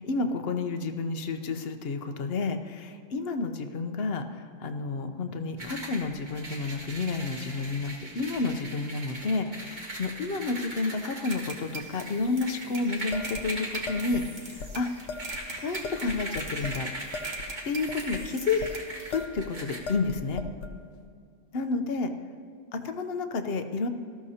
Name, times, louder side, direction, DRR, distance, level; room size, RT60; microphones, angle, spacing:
voice 1, 0.0-14.9 15.5-16.9 17.6-18.6 19.1-20.4 21.5-22.1 22.7-23.9, left 3 dB, 55° left, 7 dB, 1.0 m, -30 dB
sound 1, 5.6-19.8, right 1 dB, 40° right, 1.8 m, -40 dB
sound 2, 11.2-19.2, right 4 dB, 60° right, 1.6 m, -43 dB
sound 3, 13.1-14.2 14.6-14.7 15.1-15.4 15.8-16.8 17.1-18.7 19.1-19.5 19.9-20.8, left 4 dB, 80° left, 1.1 m, -38 dB
18.5 x 13.5 x 2.8 m, 2.4 s
omnidirectional pair, 1.2 m